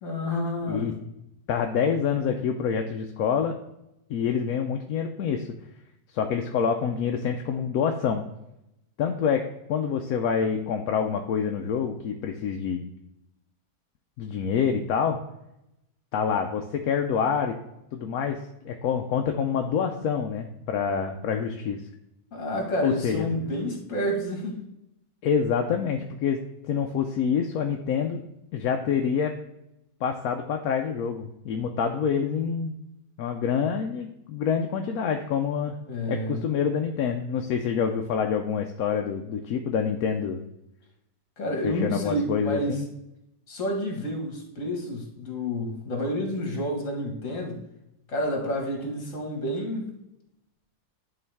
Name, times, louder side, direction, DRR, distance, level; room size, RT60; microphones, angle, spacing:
voice 1, 0.0-1.0 22.3-24.6 35.9-36.5 41.4-42.8 43.5-47.6 48.1-49.9, equal, 60° left, 1 dB, 1.9 m, -29 dB
voice 2, 1.5-3.6 4.1-5.5 6.1-8.2 9.0-9.4 9.7-12.8 14.2-15.2 16.1-17.5 17.9-18.4 18.6-21.8 22.8-23.3 25.2-26.4 26.7-28.2 28.5-29.3 30.0-32.8 33.2-35.7 36.1-40.4 41.6-42.9, left 7 dB, 75° left, 4 dB, 1.1 m, -26 dB
11.0 x 3.9 x 3.4 m, 0.86 s
omnidirectional pair, 1.6 m